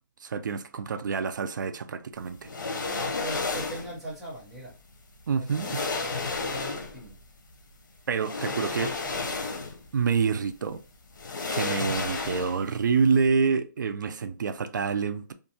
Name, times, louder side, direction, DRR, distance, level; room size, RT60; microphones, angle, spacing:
voice 1, 0.2-2.5 5.3-5.7 8.1-8.9 9.9-10.8 11.5-15.3, right 5 dB, 75° right, 0.4 m, -27 dB
sound 1, 2.4-4.0 5.0-5.1 5.5-7.1 8.2-9.9 10.2-10.4 11.2-12.8 13.0-13.2, left 4 dB, 85° left, 0.7 m, -32 dB
voice 2, 2.8-4.8 5.3-7.2 8.4-9.3, right 1 dB, 5° right, 0.5 m, -41 dB
2.6 x 2.3 x 2.7 m
hypercardioid pair, 175°, 10 cm